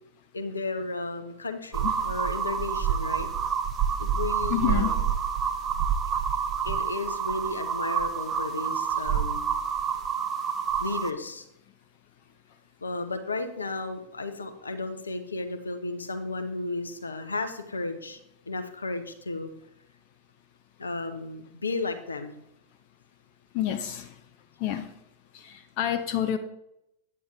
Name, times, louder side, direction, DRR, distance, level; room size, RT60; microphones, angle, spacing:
voice 1, 0.3-3.3 4.0-5.0 6.6-9.6 10.8-11.5 12.8-18.2 18.5-19.5 20.8-22.4, left 3 dB, 75° left, 8 dB, 1.0 m, -33 dB
sound 1, 1.7-11.1, right 7 dB, 25° right, 0.9 m, -28 dB
voice 2, 4.5-4.9 23.5-24.1 24.6-24.9 25.3-26.4, left 11 dB, 45° left, 8 dB, 0.7 m, -28 dB
9.8 x 8.7 x 3.7 m, 0.80 s
figure-of-eight pair, 90°, 0 cm